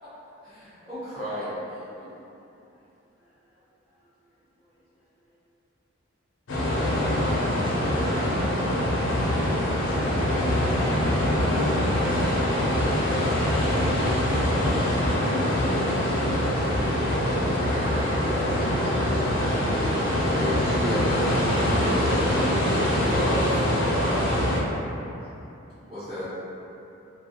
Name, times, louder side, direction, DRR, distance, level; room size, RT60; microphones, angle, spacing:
voice 1, 0.4-1.6 2.0-2.1 14.5-14.6 20.3-22.1 22.6-24.5 25.8-26.4, equal, 30° right, -16 dB, 1.1 m, -32 dB
sound 1, 6.5-24.6, left 1 dB, 75° left, 0.5 m, -24 dB
voice 2, 15.1-17.7, equal, 5° right, -14 dB, 0.8 m, -39 dB
voice 3, 17.6-19.2 19.7-20.2, equal, 60° right, -12 dB, 0.7 m, -39 dB
2.4 x 2.3 x 2.8 m, 2.9 s
head